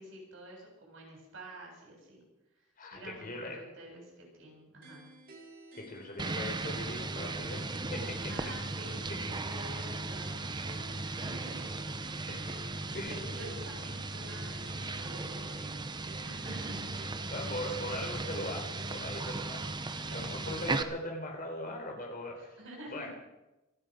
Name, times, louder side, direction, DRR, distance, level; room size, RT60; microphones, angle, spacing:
voice 1, 0.0-2.2 2.9-5.1 8.3-11.6 12.2-12.5 12.8-15.5 16.2-16.9 20.0-20.6 22.4-23.1, right 1 dB, 65° right, -1 dB, 7.5 m, -49 dB
voice 2, 2.8-3.6 5.7-7.6 7.9-8.1 9.1-9.3 12.3-12.4 12.9-13.5 17.3-19.8 20.1-22.5 22.9-23.1, left 1 dB, 40° left, 1 dB, 4.1 m, -40 dB
sound 1, 4.8-19.3, equal, 45° right, 3.1 m, -52 dB
sound 2, 6.2-20.8, right 3 dB, 20° right, 0.7 m, -37 dB
27.0 x 9.8 x 5.3 m, 0.99 s
head